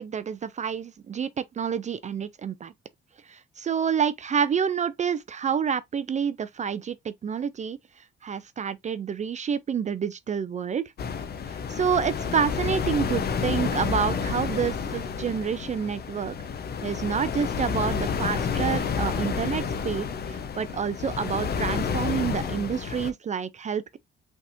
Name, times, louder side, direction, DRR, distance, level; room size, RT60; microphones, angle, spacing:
voice 1, 0.0-2.7 3.3-7.8 8.2-10.8 11.5-16.3 16.8-24.0, right 7 dB, 35° right, 0.4 m, -28 dB
sound 1, 11.0-23.1, left 6 dB, 55° left, 0.8 m, -30 dB
5.4 x 3.5 x 2.5 m
cardioid pair, 90°, 20 cm